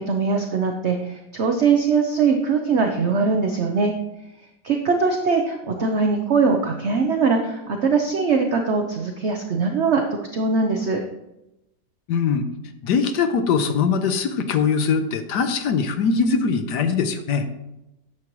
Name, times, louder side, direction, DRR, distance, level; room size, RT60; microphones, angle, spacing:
voice 1, 0.0-3.9 4.6-10.0 10.3-11.0, right 4 dB, 55° right, 3 dB, 0.8 m, -21 dB
voice 2, 12.1-12.5 12.8-17.4, left 5 dB, 70° left, 8 dB, 1.3 m, -21 dB
10.5 x 7.3 x 3.1 m, 0.90 s
omnidirectional pair, 2.0 m